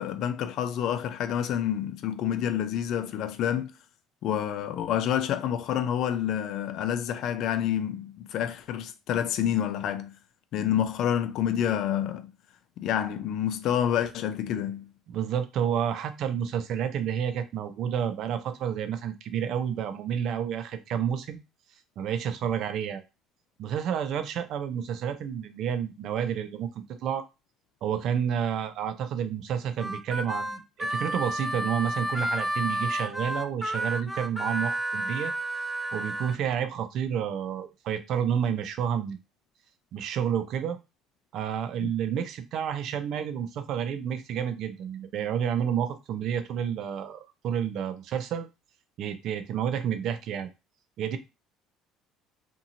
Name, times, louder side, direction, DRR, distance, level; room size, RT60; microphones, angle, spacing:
voice 1, 0.0-3.7 4.2-10.1 10.5-12.3 12.8-14.9 41.8-41.9, left 10 dB, 65° left, 0.4 m, -28 dB
voice 2, 15.1-21.4 22.0-23.0 23.6-27.3 27.8-35.3 35.9-39.2 39.9-40.8 41.3-48.5 49.0-50.5 51.0-51.2, right 8 dB, 60° right, 0.5 m, -30 dB
Harmonica, 29.8-36.4, right 1 dB, 5° right, 0.3 m, -31 dB
2.8 x 2.6 x 2.6 m
supercardioid pair, 90°, 0 cm